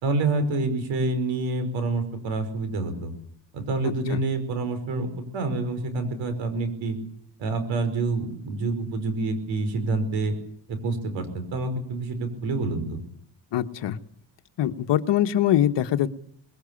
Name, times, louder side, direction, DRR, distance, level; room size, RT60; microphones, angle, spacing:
voice 1, 0.0-3.1 3.5-7.0 7.4-10.4 10.7-13.0, right 3 dB, 85° right, 10 dB, 5.4 m, -27 dB
voice 2, 13.5-14.0 14.6-16.1, left 11 dB, 70° left, 9 dB, 1.4 m, -23 dB
21.0 x 18.5 x 8.6 m, 0.64 s
cardioid pair, 95°, 44 cm